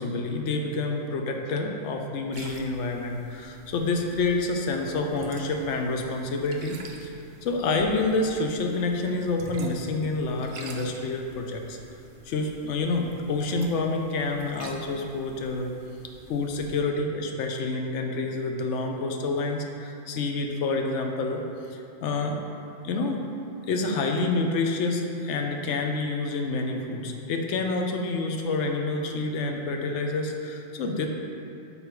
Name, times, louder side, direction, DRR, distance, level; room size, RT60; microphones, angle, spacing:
voice 1, 0.0-11.8 12.2-15.7 16.3-21.4 21.7-22.4 22.8-23.2 23.7-31.1, left 3 dB, 75° left, 3 dB, 0.9 m, -28 dB
sound 1, 2.3-16.8, right 3 dB, 55° right, 0.5 m, -47 dB
5.5 x 4.0 x 4.4 m, 2.6 s
omnidirectional pair, 1.3 m